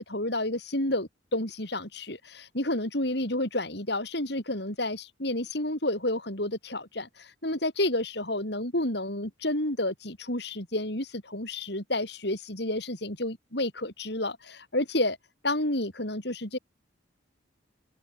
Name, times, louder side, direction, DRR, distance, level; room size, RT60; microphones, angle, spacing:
voice 1, 0.0-15.2 15.4-16.6, left 1 dB, 60° left, 5.8 m, -30 dB
head